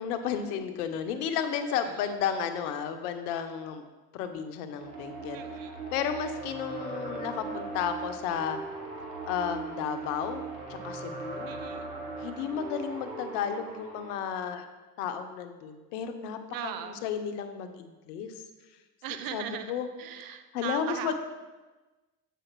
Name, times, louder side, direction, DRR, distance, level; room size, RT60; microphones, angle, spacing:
voice 1, 0.0-3.8 4.1-5.4 5.9-8.6 9.3-10.4 10.7-11.5 12.2-14.7 15.0-18.4 19.3-19.9 20.2-21.1, left 8 dB, 70° left, 8 dB, 0.7 m, -33 dB
sound 1, 4.8-14.1, right 3 dB, 85° right, 1.3 m, -39 dB
voice 2, 5.3-5.9 11.5-11.9 16.5-17.0 19.0-21.1, right 9 dB, 50° right, 9 dB, 0.6 m, -39 dB
7.5 x 4.9 x 3.0 m, 1.2 s
hypercardioid pair, 65°, 47 cm